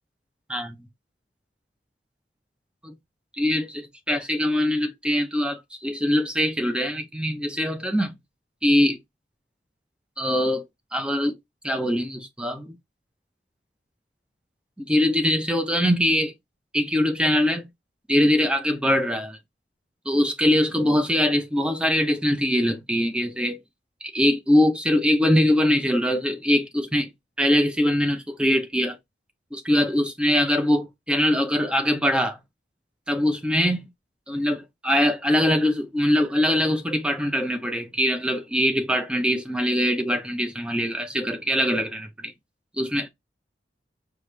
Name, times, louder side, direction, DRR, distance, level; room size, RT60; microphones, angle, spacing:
voice 1, 3.4-8.2 8.6-9.0 10.2-10.6 10.9-11.3 11.6-12.7 14.8-16.3 16.7-17.6 18.1-19.4 20.1-23.6 24.1-27.1 27.4-29.0 29.5-32.4 33.1-33.9 34.3-42.3 42.8-43.1, equal, 5° right, 0.6 m, -22 dB
4.8 x 2.4 x 3.2 m
head